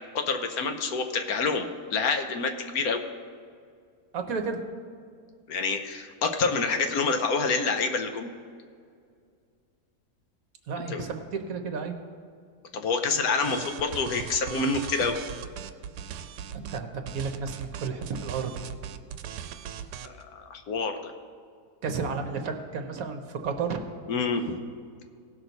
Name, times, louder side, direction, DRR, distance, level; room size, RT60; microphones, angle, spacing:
voice 1, 0.1-3.0 5.5-8.3 10.9-11.0 12.7-15.2 20.0-21.1 24.1-24.6, left 4 dB, 70° left, 6 dB, 1.2 m, -27 dB
voice 2, 4.1-4.6 10.7-11.9 16.5-18.5 21.8-23.8, right 5 dB, 65° right, 5 dB, 1.2 m, -32 dB
sound 1, 13.4-16.8 17.1-20.2, right 9 dB, 90° right, 1.2 m, -39 dB
17.5 x 6.1 x 4.0 m, 2.2 s
omnidirectional pair, 1.7 m